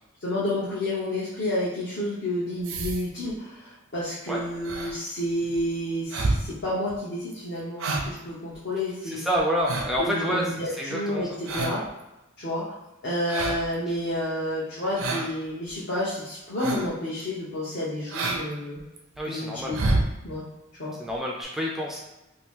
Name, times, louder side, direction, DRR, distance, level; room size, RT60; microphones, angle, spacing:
voice 1, 0.2-9.2 10.0-11.8 12.4-12.8 13.0-18.8 19.3-19.8 20.2-20.4 20.8-20.9, left 1 dB, 55° left, -7 dB, 0.8 m, -30 dB
sound 1, 2.6-3.3 4.6-4.9 5.4-5.6 6.1-6.5 6.9-7.0 7.3-7.4 7.8-8.2 8.5-8.6 9.4-10.1 11.5-11.9 13.3-13.7 15.0-15.3 15.7-15.8 16.6-16.9 17.2-17.3 18.1-18.4 18.8-19.2 19.6-20.1 21.1-21.2 21.4-21.5, right 2 dB, 80° right, 0.5 m, -28 dB
voice 2, 9.1-10.4 10.7-11.2 19.2-19.7 21.0-22.0, equal, ahead, -3 dB, 0.3 m, -28 dB
2.8 x 2.6 x 3.5 m, 0.97 s
head